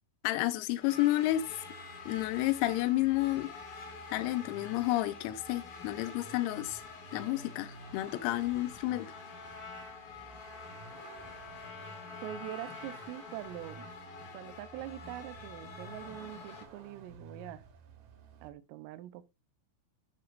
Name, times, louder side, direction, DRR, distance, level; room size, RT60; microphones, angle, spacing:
voice 1, 0.2-1.4 2.1-3.5 4.1-6.8 7.1-9.1, left 16 dB, 85° left, 3.4 m, -30 dB
sound 1, 0.8-16.6, left 5 dB, 55° left, 2.3 m, -48 dB
Vehicle, 1.3-18.5, right 5 dB, 65° right, 2.9 m, -54 dB
Trumpet, 8.9-16.9, left 3 dB, 15° left, 3.1 m, -51 dB
voice 2, 12.2-13.9 14.3-17.6 18.4-19.3, right 13 dB, 85° right, 3.2 m, -43 dB
10.5 x 8.5 x 2.5 m
omnidirectional pair, 6.0 m